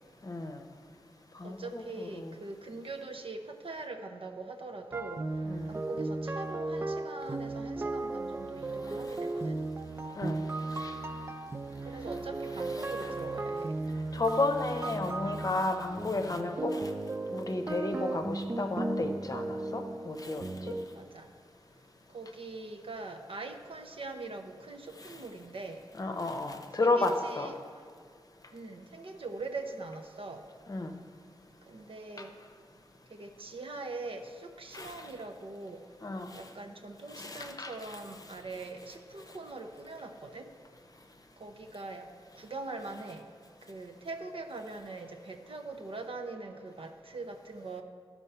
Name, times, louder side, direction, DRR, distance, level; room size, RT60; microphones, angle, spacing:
voice 1, 0.2-0.6 1.4-2.4 5.5-5.7 10.2-10.4 10.7-11.0 12.7-12.9 14.1-16.9 17.3-20.7 25.0-25.1 26.0-27.5 30.7-30.9 34.7-35.1 36.0-36.4 37.1-38.0, left 2 dB, 40° left, 5 dB, 0.7 m, -33 dB
voice 2, 1.4-5.2 5.7-9.6 11.8-13.7 20.9-21.3 22.1-25.8 26.8-27.6 28.5-30.4 31.7-32.3 33.1-35.8 36.3-40.5 41.4-42.1 42.3-43.2 43.7-47.8, right 3 dB, 70° right, 5 dB, 0.7 m, -42 dB
sound 1, 4.9-20.9, right 2 dB, 25° right, 0.3 m, -36 dB
12.5 x 4.5 x 5.5 m, 2.1 s
wide cardioid pair, 90°, 10 cm